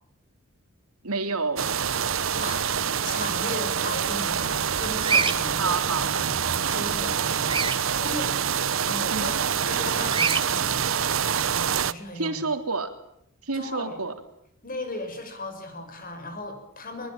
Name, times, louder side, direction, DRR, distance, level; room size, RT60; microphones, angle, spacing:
voice 1, 1.0-1.7 5.6-6.1 9.1-9.3 12.1-12.9 13.4-14.1, right 4 dB, 90° right, 7 dB, 3.3 m, -28 dB
sound 1, 1.6-11.9, right 7 dB, 60° right, 0.9 m, -26 dB
voice 2, 2.0-2.7 3.0-8.3 8.6-10.9 11.6-12.4 13.5-14.0 14.6-17.1, left 1 dB, 40° left, 7 dB, 6.2 m, -37 dB
Bird vocalization bird call bird song, 5.0-5.3 7.4-7.8 10.1-10.4, right 5 dB, 20° right, 1.5 m, -24 dB
23.5 x 21.5 x 9.0 m, 0.75 s
head